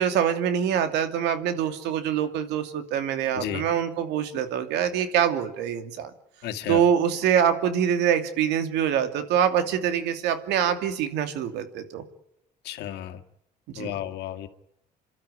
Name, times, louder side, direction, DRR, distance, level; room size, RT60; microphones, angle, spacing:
voice 1, 0.0-6.1 6.7-12.0 13.7-13.9, right 9 dB, 85° right, 8 dB, 2.7 m, -24 dB
voice 2, 6.4-6.8 12.6-13.2 13.8-14.5, left 11 dB, 80° left, 6 dB, 2.1 m, -32 dB
28.0 x 12.5 x 10.0 m, 0.81 s
cardioid pair, 110°, 17 cm